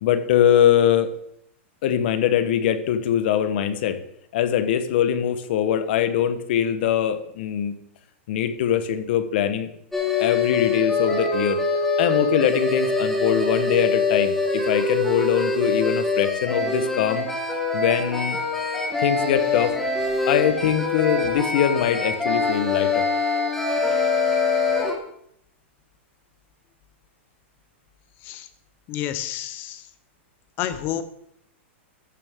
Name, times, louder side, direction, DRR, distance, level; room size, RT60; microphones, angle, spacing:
voice 1, 0.0-1.1 1.8-4.0 4.3-7.7 8.3-9.7 10.2-11.6 12.0-17.2 17.7-18.4 19.0-19.8 20.3-23.1, left 9 dB, 55° left, 11 dB, 1.0 m, -22 dB
sound 1, 9.9-24.9, left 3 dB, 5° left, 1.5 m, -24 dB
voice 2, 28.9-29.8 30.6-31.1, left 11 dB, 30° left, 12 dB, 0.8 m, -29 dB
14.0 x 6.7 x 3.6 m, 0.73 s
supercardioid pair, 155°, 7 cm